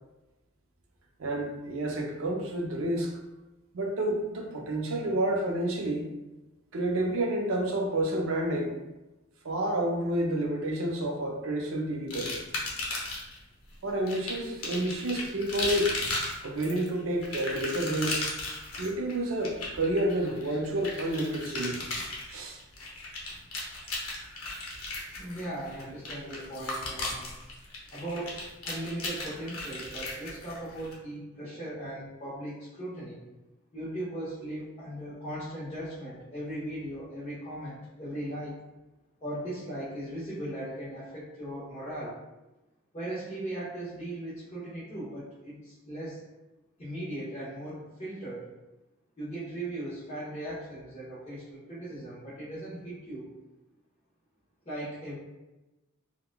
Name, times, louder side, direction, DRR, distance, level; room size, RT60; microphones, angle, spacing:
voice 1, 1.2-3.1 3.7-6.1 6.7-8.8 9.4-12.4 13.8-15.9 16.4-18.3 18.8-21.8 22.3-22.6, right 1 dB, 70° right, 1 dB, 0.5 m, -29 dB
sound 1, 12.1-13.4 14.1-30.9, left 2 dB, 80° left, 0.7 m, -36 dB
voice 2, 25.2-27.3 27.9-33.2 33.7-38.6 39.2-42.2 42.9-46.2 46.8-48.5 49.2-53.3 54.6-55.1, right 1 dB, 30° left, -11 dB, 0.9 m, -38 dB
3.7 x 2.1 x 2.2 m, 1.0 s
head